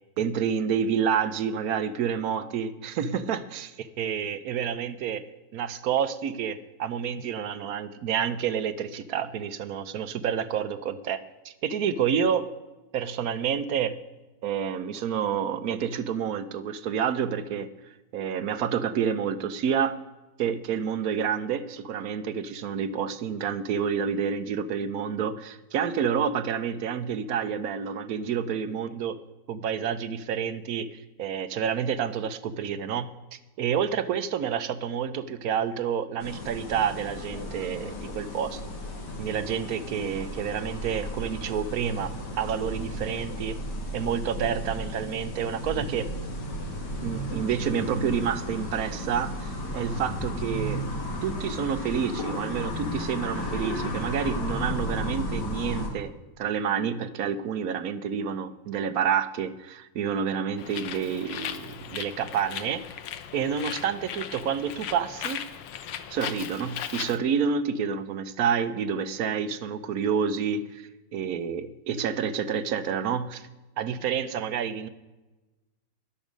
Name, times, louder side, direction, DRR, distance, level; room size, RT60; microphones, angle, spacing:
voice 1, 0.2-5.2 5.5-11.2 11.4-12.5 12.9-14.0 14.4-17.7 18.1-20.0 20.4-29.2 29.5-38.6 39.2-43.6 43.9-46.1 47.0-50.8 51.2-56.1 56.4-62.8 63.3-65.4 66.1-73.5 73.8-74.9, right 7 dB, 65° right, 11 dB, 1.0 m, -29 dB
sound 1, 36.2-55.9, equal, 75° left, 2.5 m, -34 dB
Bird, 60.6-67.2, left 9 dB, 90° left, 1.4 m, -37 dB
12.5 x 10.5 x 5.2 m, 1.1 s
omnidirectional pair, 1.9 m